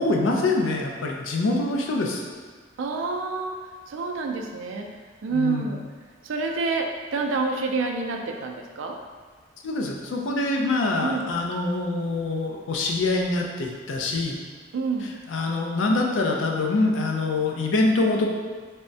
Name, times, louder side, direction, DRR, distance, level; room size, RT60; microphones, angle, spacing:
voice 1, 0.0-2.2 5.3-5.7 9.6-14.4 15.3-18.3, left 2 dB, 85° left, 1 dB, 0.4 m, -24 dB
voice 2, 2.8-3.6 3.9-4.9 5.2-5.8 6.2-9.0 11.0-11.2 14.7-15.1, right 4 dB, 85° right, 3 dB, 0.3 m, -27 dB
3.3 x 2.0 x 2.6 m, 1.5 s
head